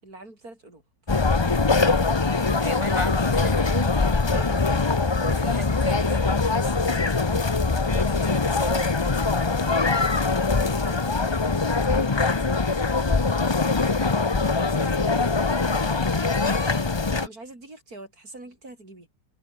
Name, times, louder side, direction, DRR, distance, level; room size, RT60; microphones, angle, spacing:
voice 1, 0.0-0.8 4.2-5.4 6.5-7.1 7.9-8.1 10.7-11.2 14.8-16.0 17.0-19.2, right 2 dB, 50° right, 7.7 m, -43 dB
sound 1, 1.1-17.3, left 4 dB, 30° left, 0.5 m, -23 dB
voice 2, 2.6-3.9 5.2-6.2 7.8-8.9 13.8-14.1, left 1 dB, 15° left, 5.2 m, -32 dB
omnidirectional pair, 2.0 m